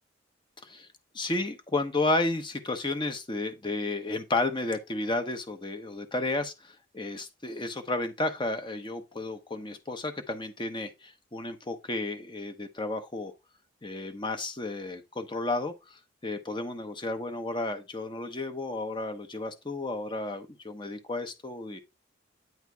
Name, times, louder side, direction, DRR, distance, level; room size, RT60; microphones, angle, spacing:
voice 1, 1.1-13.3 13.8-21.8, left 2 dB, 25° left, 0.9 m, -32 dB
9.4 x 3.3 x 4.6 m
head